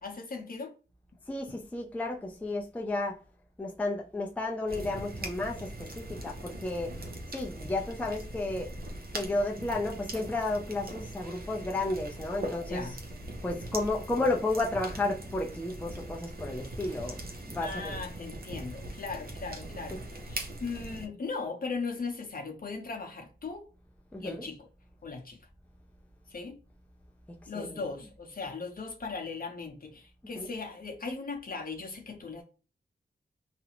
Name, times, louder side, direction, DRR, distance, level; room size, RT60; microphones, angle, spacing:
voice 1, 0.0-0.7 12.7-13.0 17.6-23.7 24.2-24.7 25.0-25.4 26.3-26.6 27.5-32.4, left 4 dB, 50° left, 0.7 m, -38 dB
voice 2, 1.3-3.2 3.6-6.9 7.3-8.7 9.1-12.9 13.4-17.9 24.1-24.4 27.5-27.8 30.4-30.5, left 2 dB, 10° left, 0.4 m, -32 dB
sound 1, 4.7-21.1, right 1 dB, 55° right, 0.6 m, -41 dB
2.5 x 2.0 x 2.8 m
wide cardioid pair, 85°, 19 cm